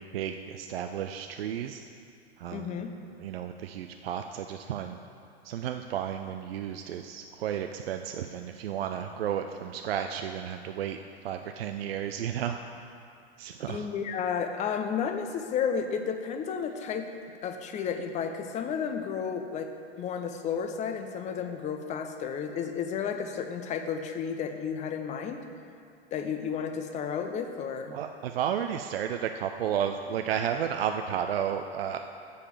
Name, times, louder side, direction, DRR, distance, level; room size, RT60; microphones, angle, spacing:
voice 1, 0.0-1.8 2.4-2.8 3.2-5.0 5.4-12.6 13.4-13.9 27.9-32.0, right 9 dB, 65° right, 6 dB, 0.5 m, -33 dB
voice 2, 2.5-2.9 13.7-17.1 17.4-19.7 20.0-25.4 26.1-28.0, left 7 dB, 20° left, 6 dB, 0.6 m, -32 dB
7.8 x 4.9 x 7.2 m, 2.4 s
figure-of-eight pair, 95°, 33 cm